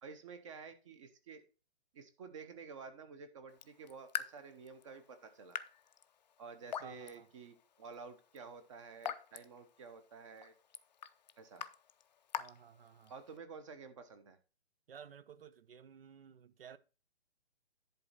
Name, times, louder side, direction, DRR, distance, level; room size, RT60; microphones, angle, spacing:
voice 1, 0.0-1.4 1.9-5.6 6.4-10.5 11.4-11.7 13.1-14.4, right 5 dB, 30° right, 1.0 m, -51 dB
Raindrop / Drip, 3.5-13.4, left 8 dB, 40° left, 0.5 m, -47 dB
voice 2, 6.8-7.3 8.4-8.5 12.4-13.1 14.9-16.8, right 7 dB, 60° right, 0.9 m, -55 dB
10.5 x 4.1 x 5.6 m
hypercardioid pair, 160°, 33 cm